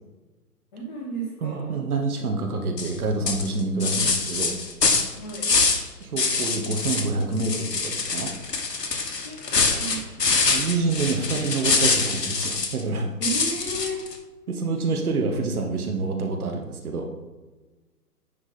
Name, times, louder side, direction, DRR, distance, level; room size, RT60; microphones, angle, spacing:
voice 1, 0.7-1.7 5.1-5.5 9.2-10.1 13.2-14.0, right 2 dB, 30° left, -2 dB, 1.2 m, -33 dB
voice 2, 1.4-4.6 6.0-8.3 10.2-13.1 14.5-17.1, right 3 dB, 65° right, 3 dB, 1.1 m, -27 dB
sound 1, 2.8-3.0 3.3-5.9 6.2-7.1 7.4-12.8 13.2-14.1, left 4 dB, 85° left, 1.2 m, -24 dB
9.8 x 3.5 x 4.1 m, 1.2 s
figure-of-eight pair, 140°, 48 cm